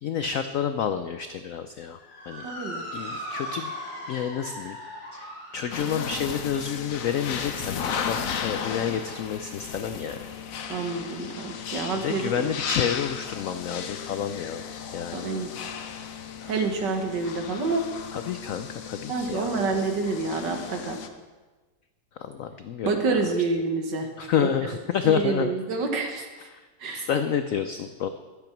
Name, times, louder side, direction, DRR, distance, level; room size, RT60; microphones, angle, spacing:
voice 1, 0.0-2.0 2.3-2.5 2.9-3.7 4.1-4.8 5.1-10.3 12.0-14.6 14.9-15.3 18.1-19.5 22.2-23.2 24.2-25.6 26.5-26.7 26.9-28.1, left 8 dB, 85° left, 9 dB, 0.7 m, -29 dB
Motor vehicle (road) / Siren, 2.0-10.6, equal, 35° left, 3.9 m, -41 dB
voice 2, 2.4-2.8 10.7-12.5 15.1-15.5 16.5-17.8 19.1-21.0 22.8-24.1 24.4-24.5 25.0-26.3 26.8-27.1, right 3 dB, 65° right, 4 dB, 1.9 m, -28 dB
sound 1, 5.7-21.1, left 7 dB, 55° left, 1.0 m, -35 dB
12.0 x 8.0 x 5.9 m, 1.3 s
omnidirectional pair, 2.0 m